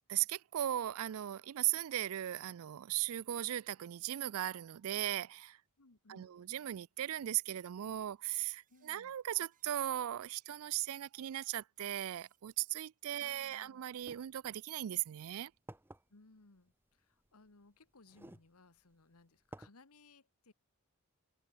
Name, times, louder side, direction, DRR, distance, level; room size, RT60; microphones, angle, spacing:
voice 1, 0.1-5.6 6.1-15.5, right 12 dB, 75° right, 0.4 m, -38 dB
sound 1, 3.0-3.4 4.3-4.6 5.3-5.4 5.7-6.5 7.4-7.5 8.1-9.0 9.5-9.9 10.2-11.3 11.7-12.6 13.0-13.1, right 9 dB, 35° right, 3.7 m, -78 dB
voice 2, 5.8-6.4 8.7-9.1 13.2-13.9 16.1-20.5, left 3 dB, 85° left, 1.6 m, -63 dB
sound 2, 14.0-14.2 15.0-15.1 15.7-16.0 17.2-17.3 18.1-18.5 18.9-19.0 19.5-19.7, right 1 dB, 10° right, 0.9 m, -51 dB
head